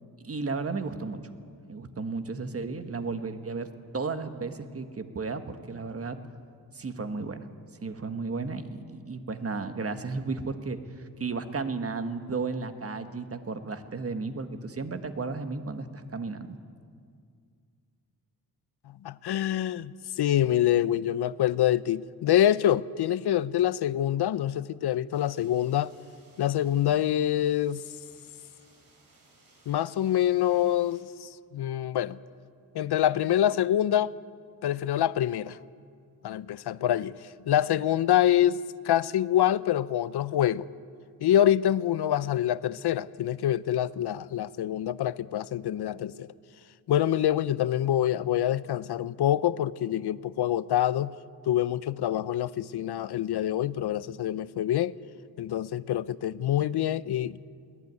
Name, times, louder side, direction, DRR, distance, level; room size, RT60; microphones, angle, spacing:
voice 1, 0.2-1.2 1.7-3.7 3.9-6.2 6.7-7.5 7.8-16.6, right 4 dB, 35° right, 1.4 m, -34 dB
voice 2, 19.0-25.9 26.4-27.8 29.7-32.2 32.7-34.2 34.6-35.6 36.2-37.1 37.5-40.7 41.2-46.3 46.9-51.1 51.4-54.9 55.4-57.4, left 11 dB, 90° left, 0.7 m, -26 dB
sound 1, 25.1-31.0, right 2 dB, 60° right, 6.7 m, -61 dB
22.0 x 18.0 x 9.5 m
wide cardioid pair, 140°, 38 cm